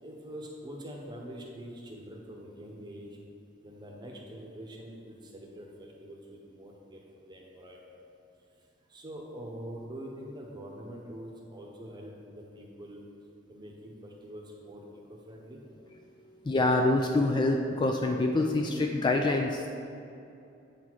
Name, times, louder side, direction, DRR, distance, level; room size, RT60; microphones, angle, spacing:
voice 1, 0.0-3.2 3.6-8.0 8.9-13.0 13.5-15.6, equal, 25° right, -1 dB, 0.9 m, -45 dB
voice 2, 16.4-19.7, left 2 dB, 25° left, 2 dB, 0.3 m, -26 dB
8.2 x 4.3 x 4.6 m, 2.7 s
head